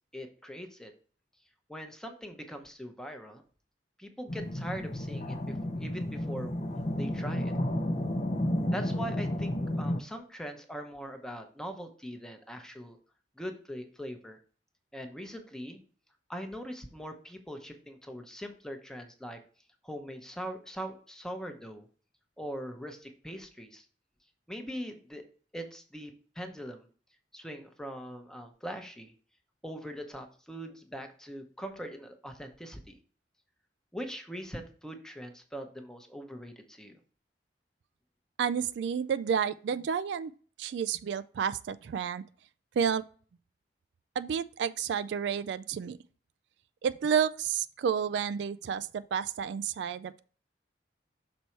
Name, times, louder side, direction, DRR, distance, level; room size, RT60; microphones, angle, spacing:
voice 1, 0.1-0.9 1.7-3.4 4.0-6.6 7.0-7.5 8.7-13.0 13.4-14.4 14.9-15.8 16.3-19.4 19.8-21.9 22.4-23.9 24.5-25.2 25.5-26.9 27.3-29.1 29.6-33.0 33.9-37.0, equal, 5° left, 0.8 m, -41 dB
sound 1, 4.3-10.0, left 1 dB, 35° left, 0.6 m, -32 dB
voice 2, 38.4-40.3 40.6-42.2 42.8-43.0 44.2-46.0 46.8-50.2, right 7 dB, 70° right, 0.3 m, -30 dB
6.1 x 4.1 x 4.4 m
head